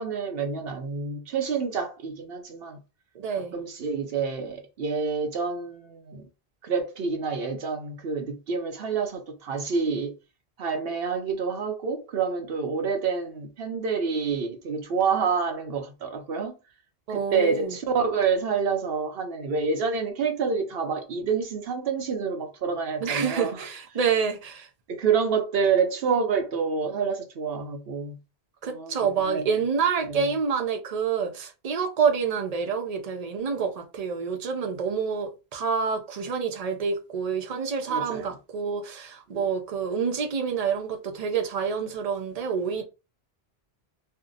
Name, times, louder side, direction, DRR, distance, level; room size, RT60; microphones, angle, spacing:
voice 1, 0.0-2.8 3.3-6.3 6.6-10.1 10.6-16.6 17.1-23.6 24.9-28.2 28.6-29.6 30.0-30.3 37.9-38.4 39.3-39.5, right 5 dB, 70° right, 0.8 m, -28 dB
voice 2, 3.2-3.5 17.1-17.7 23.0-24.7 28.6-42.8, right 6 dB, 45° right, 0.6 m, -27 dB
2.7 x 2.1 x 3.8 m
omnidirectional pair, 1.0 m